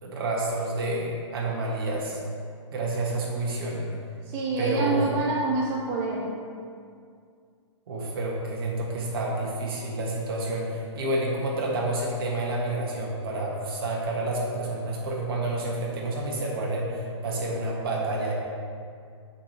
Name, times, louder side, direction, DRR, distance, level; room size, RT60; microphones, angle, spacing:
voice 1, 0.0-2.2 2.7-3.8 4.6-5.0 7.9-18.3, right 2 dB, 50° right, -3 dB, 1.6 m, -29 dB
voice 2, 4.3-6.3, right 3 dB, 20° right, -4 dB, 0.6 m, -26 dB
7.1 x 3.5 x 5.9 m, 2.3 s
hypercardioid pair, 155°, 16 cm